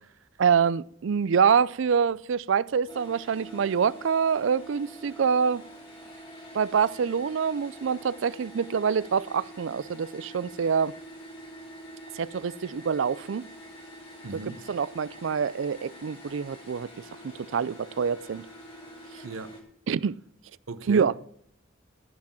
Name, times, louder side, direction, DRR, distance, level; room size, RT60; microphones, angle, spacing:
voice 1, 0.4-5.6 6.5-10.9 12.1-13.4 14.7-16.9 17.2-18.5 19.9-20.2 20.9-21.1, right 6 dB, 70° right, 0.4 m, -25 dB
sound 1, 2.9-19.6, equal, 30° left, 3.3 m, -46 dB
voice 2, 14.2-14.6 19.2-19.6 20.7-21.2, right 3 dB, 90° right, 0.8 m, -38 dB
14.5 x 6.0 x 8.8 m
head